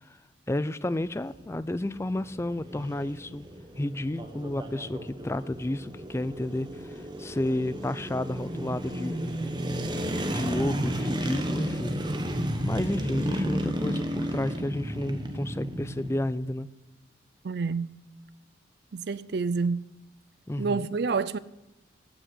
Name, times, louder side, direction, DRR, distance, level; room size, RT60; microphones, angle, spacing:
voice 1, 0.5-3.5 3.8-9.2 10.3-12.0 12.6-16.7 20.5-20.9, left 1 dB, 15° left, 0.4 m, -31 dB
sound 1, 1.0-16.2, equal, 25° right, 1.1 m, -33 dB
voice 2, 17.4-18.0 18.9-19.9 20.6-21.4, right 4 dB, 60° right, 0.4 m, -28 dB
15.0 x 6.3 x 9.6 m
head